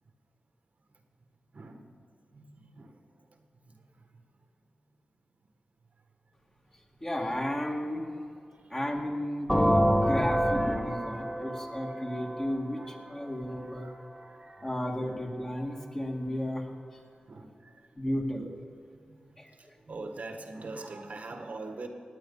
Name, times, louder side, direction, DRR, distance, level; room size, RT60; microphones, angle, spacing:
voice 1, 1.5-1.9 2.3-2.9 8.6-8.7 11.0-11.1 11.5-12.0 12.7-13.2 13.5-14.7 15.0-15.3 17.3-17.7 19.1-19.2 19.9-21.9, right 3 dB, 60° right, 5 dB, 1.5 m, -44 dB
voice 2, 7.0-8.1 8.7-13.9 14.6-16.7 18.0-18.5 19.4-19.5, left 1 dB, 25° left, 0 dB, 2.1 m, -33 dB
sound 1, 9.5-13.2, equal, 5° left, 1.4 m, -27 dB
18.0 x 8.5 x 5.5 m, 2.4 s
cardioid pair, 65°, 3 cm